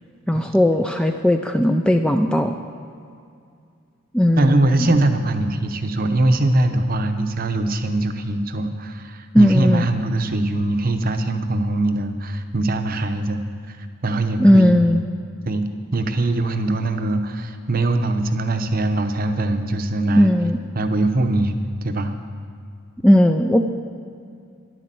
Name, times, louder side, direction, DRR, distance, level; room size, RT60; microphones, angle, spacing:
voice 1, 0.3-2.6 4.1-5.0 9.3-9.9 14.4-15.0 20.2-20.6 23.0-23.7, equal, 5° left, 5 dB, 0.3 m, -17 dB
voice 2, 4.4-15.0 15.5-15.6 15.9-20.3 20.7-22.1, right 2 dB, 40° right, 7 dB, 0.8 m, -22 dB
11.0 x 10.5 x 7.6 m, 2.3 s
head